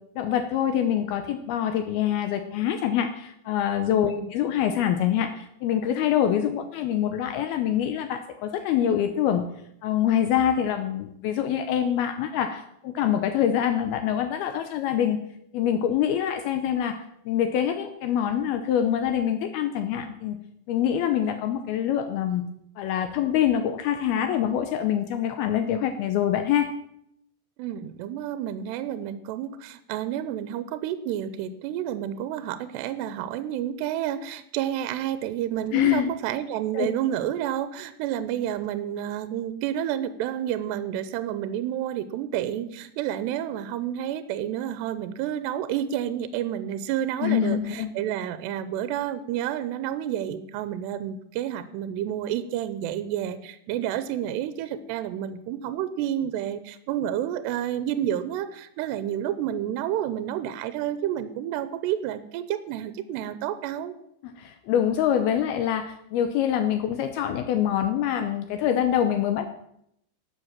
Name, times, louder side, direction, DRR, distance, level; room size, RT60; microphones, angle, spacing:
voice 1, 0.2-9.4 9.8-15.2 15.5-20.4 20.7-22.4 22.8-26.7 35.7-36.1 36.7-36.9 47.2-47.9 64.2-69.5, left 10 dB, 80° left, 8 dB, 2.4 m, -25 dB
voice 2, 27.6-64.0, right 11 dB, 80° right, 12 dB, 2.8 m, -30 dB
12.5 x 7.9 x 7.3 m, 0.74 s
omnidirectional pair, 5.0 m